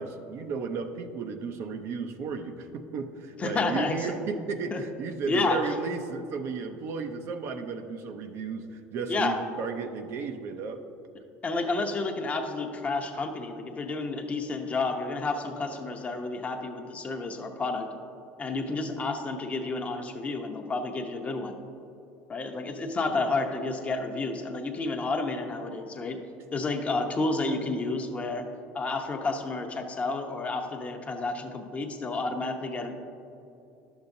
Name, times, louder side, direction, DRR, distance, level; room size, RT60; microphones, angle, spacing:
voice 1, 0.0-10.8, right 5 dB, 55° right, 6 dB, 0.6 m, -34 dB
voice 2, 3.4-4.0 4.7-4.8 5.3-5.6 9.1-9.4 11.4-17.9 18.4-21.5 22.3-26.2 26.5-28.4 28.7-32.9, left 3 dB, 25° left, 4 dB, 0.8 m, -30 dB
11.0 x 7.0 x 2.7 m, 2.8 s
supercardioid pair, 110°, 5 cm